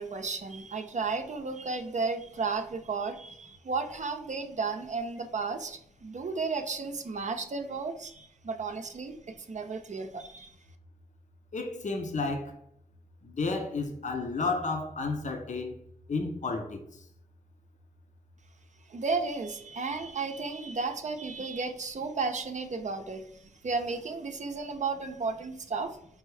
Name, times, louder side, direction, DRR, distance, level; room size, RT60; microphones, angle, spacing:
voice 1, 0.0-10.5 18.9-26.0, right 4 dB, 50° right, 0.6 m, -33 dB
voice 2, 11.5-12.6 13.2-15.8 16.1-16.8, left 3 dB, 50° left, 0.7 m, -32 dB
4.7 x 2.6 x 3.2 m
cardioid pair, 45°, 16 cm